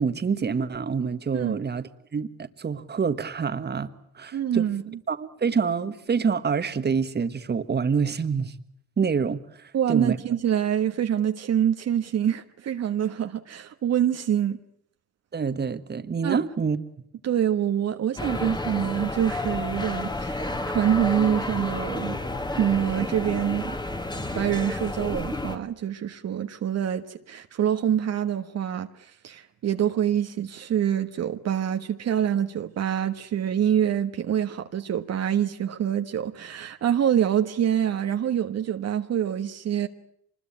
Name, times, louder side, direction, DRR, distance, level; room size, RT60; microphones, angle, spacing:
voice 1, 0.0-4.7 5.1-8.5 9.0-10.2 15.3-16.8, right 5 dB, 35° right, 1.6 m, -27 dB
voice 2, 4.3-5.0 9.7-14.6 16.2-16.4 17.2-22.2 22.6-23.8 24.3-39.9, right 9 dB, 60° right, 1.4 m, -26 dB
sound 1, 18.2-25.6, left 2 dB, 15° left, 2.1 m, -31 dB
25.0 x 21.0 x 8.8 m
cardioid pair, 80°, 30 cm